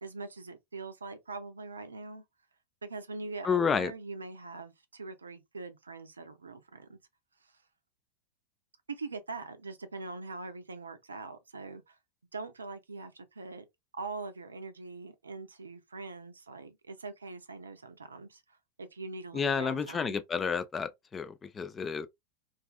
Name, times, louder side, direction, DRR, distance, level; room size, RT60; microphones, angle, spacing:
voice 1, 0.0-2.2 2.8-7.0 7.4-7.5 8.9-12.0 12.3-13.7 13.9-20.2, right 3 dB, 75° right, 0.5 m, -42 dB
voice 2, 3.4-3.9 19.3-22.1, left 6 dB, 20° left, 0.3 m, -30 dB
2.5 x 2.4 x 2.3 m
figure-of-eight pair, 90°, 0 cm